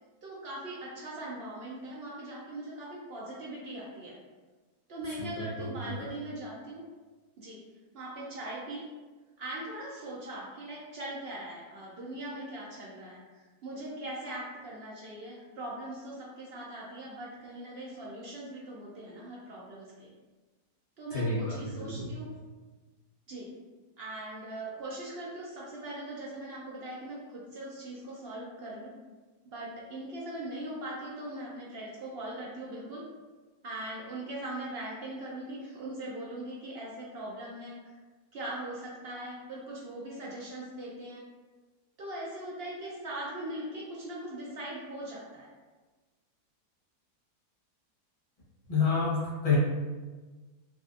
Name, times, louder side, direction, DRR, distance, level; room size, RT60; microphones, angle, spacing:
voice 1, 0.2-4.1 4.9-6.8 7.4-7.6 7.9-8.8 9.4-20.1 21.0-22.3 23.3-23.5 24.0-28.9 29.4-33.0 33.6-38.0 38.3-41.2 42.0-45.5, right 1 dB, 75° right, -5 dB, 0.5 m, -40 dB
voice 2, 5.2-6.1 21.1-22.1 48.7-49.6, left 4 dB, 30° left, -7 dB, 0.8 m, -30 dB
3.8 x 2.5 x 2.4 m, 1.3 s
omnidirectional pair, 1.7 m